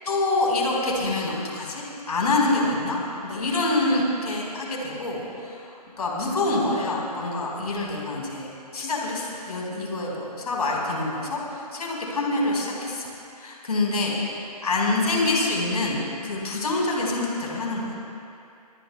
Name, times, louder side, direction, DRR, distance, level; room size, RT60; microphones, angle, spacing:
voice 1, 0.0-13.1 13.4-18.0, left 2 dB, 70° left, -2 dB, 4.6 m, -26 dB
24.5 x 19.5 x 2.3 m, 2.6 s
hypercardioid pair, 170°, 21 cm